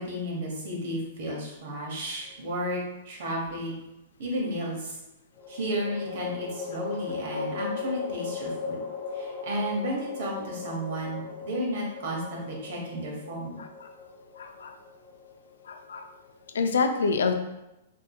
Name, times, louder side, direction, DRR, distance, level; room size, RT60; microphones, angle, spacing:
voice 1, 0.0-2.8 3.0-3.7 4.2-5.0 5.5-8.8 9.1-13.6, equal, 65° right, -2 dB, 1.1 m, -33 dB
sound 1, 2.3-3.1 5.4-16.7, left 5 dB, 10° left, 1.1 m, -38 dB
voice 2, 14.4-14.7 15.7-16.1 16.5-17.3, left 4 dB, 90° left, 7 dB, 0.3 m, -27 dB
3.4 x 2.8 x 2.3 m, 0.92 s
hypercardioid pair, 145°, 0 cm